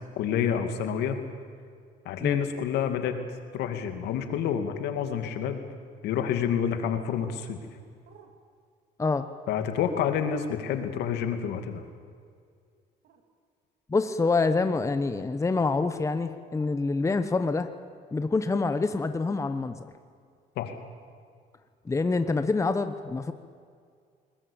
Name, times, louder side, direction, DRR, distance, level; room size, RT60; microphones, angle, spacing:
voice 1, 0.2-1.2 2.0-3.2 3.5-5.6 6.0-7.6 9.5-11.8 20.6-20.8, left 8 dB, 80° left, 7 dB, 2.4 m, -28 dB
sound 1, 7.1-7.4 8.0-8.3 9.0-9.3 9.8-10.2 10.8-11.0 13.0-13.2 14.1-14.4 15.6-15.8 16.6-16.7, right 8 dB, 75° right, 2.8 m, -53 dB
voice 2, 13.9-17.7 18.1-19.8 21.8-23.3, left 3 dB, 15° left, 10 dB, 1.0 m, -26 dB
21.5 x 20.0 x 8.7 m, 2.2 s
cardioid pair, 110°, 17 cm